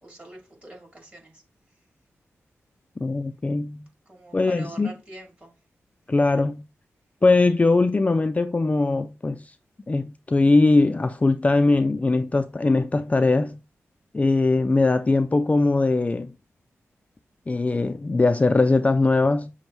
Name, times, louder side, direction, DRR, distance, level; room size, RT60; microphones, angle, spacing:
voice 1, 0.0-1.4 4.1-5.5, right 2 dB, 25° right, 2.5 m, -44 dB
voice 2, 3.0-3.9 4.3-4.9 6.1-6.7 7.2-9.4 9.9-13.6 14.1-16.3 17.5-19.5, left 3 dB, 25° left, 0.3 m, -21 dB
6.2 x 2.1 x 3.0 m
cardioid pair, 60°, 5 cm